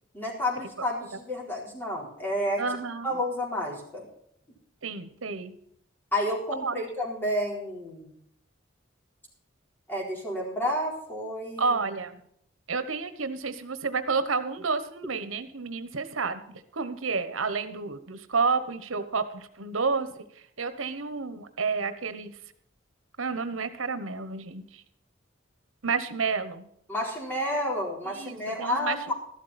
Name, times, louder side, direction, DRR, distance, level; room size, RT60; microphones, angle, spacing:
voice 1, 0.1-2.6 3.0-4.1 6.1-8.1 9.9-11.8 26.9-29.1, left 1 dB, 10° left, -2 dB, 4.1 m, -30 dB
voice 2, 2.6-3.1 4.8-5.5 6.6-6.8 11.6-12.2 12.7-16.4 16.7-20.1 20.6-22.3 23.2-24.8 25.8-26.7 28.1-29.1, right 4 dB, 90° right, 11 dB, 1.1 m, -30 dB
13.5 x 12.0 x 4.2 m, 0.71 s
head